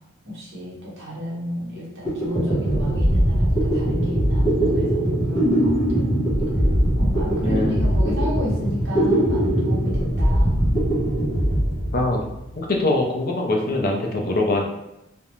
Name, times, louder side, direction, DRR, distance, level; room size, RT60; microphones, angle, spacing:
voice 1, 0.2-6.2 6.9-10.6, equal, 65° right, -5 dB, 0.9 m, -32 dB
sound 1, 1.8-1.9 2.1-12.5, right 1 dB, 20° left, 0.8 m, -21 dB
voice 2, 7.4-7.8 11.9-12.2 12.6-14.7, left 2 dB, 45° left, 0 dB, 0.5 m, -22 dB
2.4 x 2.1 x 3.0 m, 0.86 s
head